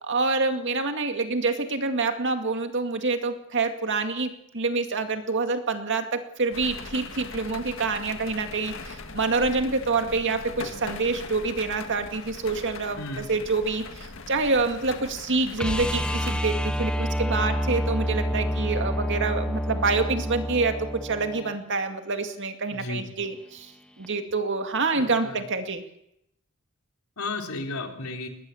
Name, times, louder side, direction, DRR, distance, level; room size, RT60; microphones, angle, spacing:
voice 1, 0.0-23.7 24.0-25.8, right 3 dB, 60° right, 6 dB, 2.2 m, -27 dB
sound 1, 6.5-16.4, left 3 dB, 65° left, 1.8 m, -40 dB
voice 2, 13.0-13.3 22.7-23.1 24.9-25.5 27.2-28.3, left 2 dB, 80° left, 3 dB, 3.6 m, -34 dB
sound 2, 15.6-21.6 24.0-24.1, equal, 5° left, 1.5 m, -28 dB
21.5 x 19.5 x 7.1 m, 0.79 s
head